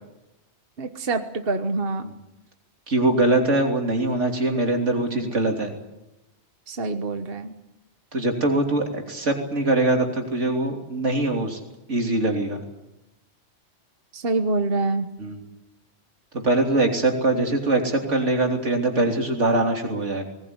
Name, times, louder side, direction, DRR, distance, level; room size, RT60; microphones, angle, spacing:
voice 1, 0.8-2.1 6.7-7.5 14.1-15.1, right 3 dB, 55° right, 7 dB, 1.5 m, -26 dB
voice 2, 2.9-5.7 8.1-11.6 11.9-12.6 15.2-15.5 16.3-20.2, right 2 dB, 90° right, 3 dB, 3.5 m, -22 dB
20.0 x 19.5 x 9.7 m, 0.96 s
omnidirectional pair, 1.2 m